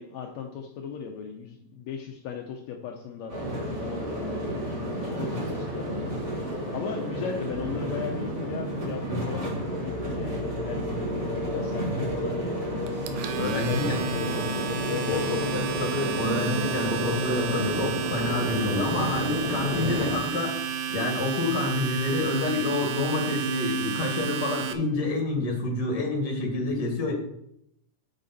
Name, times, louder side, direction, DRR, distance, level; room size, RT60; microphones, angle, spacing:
voice 1, 0.0-3.4 3.7-6.1 6.7-12.6 13.5-15.8, left 6 dB, 80° left, 2 dB, 1.6 m, -37 dB
sound 1, 3.3-20.1, equal, 30° right, 3.7 m, -31 dB
Domestic sounds home sounds, 12.9-24.7, right 8 dB, 80° right, 2.4 m, -32 dB
voice 2, 13.4-14.0 14.7-14.8 15.1-20.5 20.9-27.1, left 3 dB, 35° left, 1 dB, 1.9 m, -28 dB
9.0 x 6.5 x 4.2 m, 0.76 s
omnidirectional pair, 4.0 m